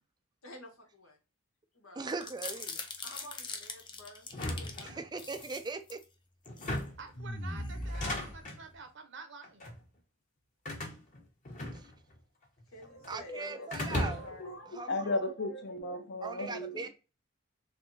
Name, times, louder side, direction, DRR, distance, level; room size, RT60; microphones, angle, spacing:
voice 1, 0.4-1.2 1.7-2.0 2.4-4.3 4.6-4.9 12.7-14.6, left 1 dB, 90° left, 1.4 m, -52 dB
voice 2, 2.0-2.8 4.8-6.0 11.7-11.8 13.1-14.3 14.7-15.2 16.2-16.9, right 4 dB, 20° right, 0.4 m, -40 dB
sound 1, 2.1-4.8 5.2-6.0 6.5-6.8 7.1-8.8, left 2 dB, 25° left, 0.6 m, -41 dB
sound 2, 4.3-5.5 6.5-7.1 7.8-8.6 9.4-9.8 10.6-12.2 12.4-13.2 13.7-14.5, left 1 dB, 40° left, 1.1 m, -37 dB
voice 3, 7.0-9.7, right 4 dB, 60° right, 0.9 m, -48 dB
voice 4, 13.3-13.7 14.0-16.9, left 2 dB, 55° left, 0.9 m, -36 dB
3.5 x 3.5 x 2.7 m
head